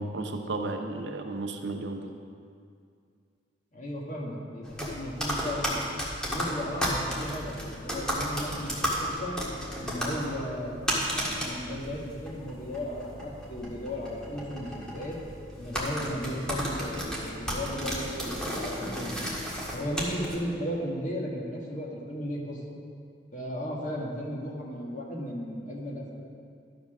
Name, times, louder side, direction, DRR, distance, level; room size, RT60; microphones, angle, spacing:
voice 1, 0.0-2.2, right 2 dB, 70° right, 4 dB, 0.8 m, -33 dB
voice 2, 3.7-5.7 6.2-9.4 9.8-10.9 11.4-15.2 15.6-19.1 19.7-22.8 23.3-26.2, equal, 45° left, -3 dB, 1.7 m, -35 dB
Macbook Keyboard, 4.6-20.3, equal, 5° left, 1.6 m, -33 dB
12.0 x 5.1 x 6.0 m, 2.3 s
head